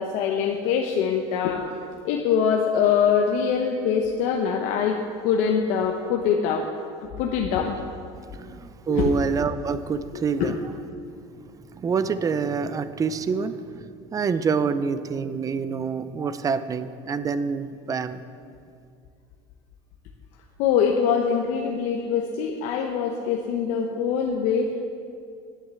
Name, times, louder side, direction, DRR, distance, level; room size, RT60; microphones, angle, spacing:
voice 1, 0.0-1.7 2.0-5.0 5.2-6.7 7.2-7.8 8.9-9.1 10.4-10.5 20.6-24.7, left 7 dB, 70° left, 2 dB, 0.9 m, -23 dB
voice 2, 8.3-10.6 11.7-18.2, right 5 dB, 25° right, 13 dB, 0.5 m, -26 dB
10.0 x 8.0 x 6.9 m, 2.4 s
supercardioid pair, 110°, 13 cm